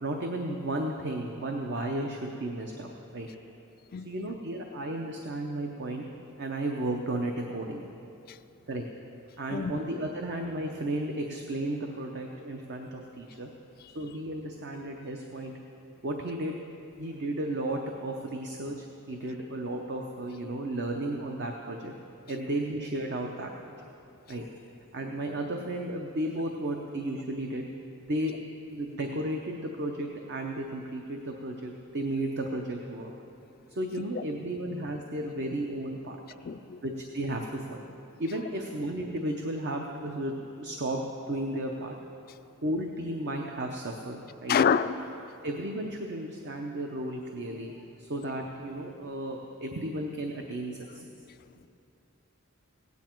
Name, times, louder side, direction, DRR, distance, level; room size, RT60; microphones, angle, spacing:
voice 1, 0.0-3.3 4.0-6.0 6.4-7.9 8.7-8.8 9.4-13.5 13.9-15.5 16.0-16.6 17.0-21.9 22.3-23.7 24.3-24.5 24.9-27.7 28.0-28.3 28.7-33.1 33.7-36.2 36.8-37.8 38.2-42.0 42.6-44.6 45.4-47.7 48.0-51.0, right 1 dB, 55° right, 0.8 m, -34 dB
voice 2, 36.4-36.8 44.5-45.0, left 7 dB, 45° left, 0.3 m, -26 dB
16.5 x 9.6 x 4.5 m
head